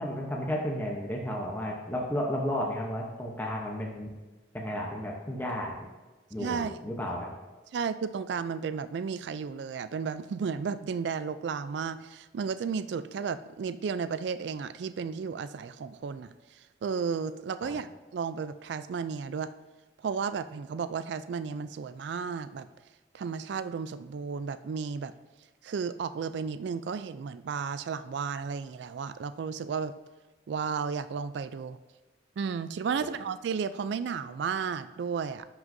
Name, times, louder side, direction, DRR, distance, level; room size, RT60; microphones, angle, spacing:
voice 1, 0.0-4.1 4.5-5.8 6.3-7.3 17.6-17.8, equal, 10° left, -1 dB, 0.8 m, -33 dB
voice 2, 6.4-6.8 7.7-16.3 16.8-19.5 20.0-22.7 23.1-25.1 25.6-29.9 30.5-31.8 32.4-35.5, right 6 dB, 65° right, 13 dB, 0.3 m, -33 dB
10.5 x 6.0 x 2.6 m, 1.2 s
head